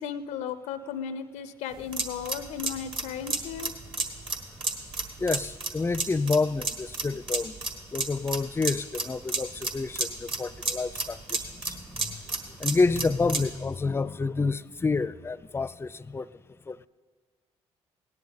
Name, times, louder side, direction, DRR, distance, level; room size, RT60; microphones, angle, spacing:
voice 1, 0.0-3.7, left 8 dB, 90° left, 13 dB, 0.4 m, -35 dB
sound 1, 1.7-13.5, right 3 dB, 45° right, 1.7 m, -32 dB
voice 2, 5.2-7.5 7.9-12.2 12.5-16.3 16.7-16.9, left 4 dB, 20° left, 18 dB, 0.4 m, -29 dB
17.5 x 10.5 x 4.0 m, 1.5 s
supercardioid pair, 60°, 12 cm